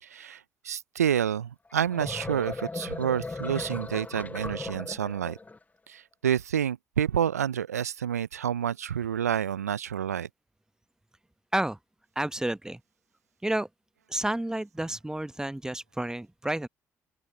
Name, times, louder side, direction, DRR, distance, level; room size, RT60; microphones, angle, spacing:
voice 1, 0.0-5.4 5.9-10.3, right 9 dB, 85° right, 0.5 m, -29 dB
sound 1, 1.7-5.6, left 3 dB, 20° left, 0.9 m, -37 dB
voice 2, 12.1-12.8 13.4-13.7 14.1-16.7, right 1 dB, 5° right, 1.2 m, -30 dB
open air
figure-of-eight pair, 50°, 8 cm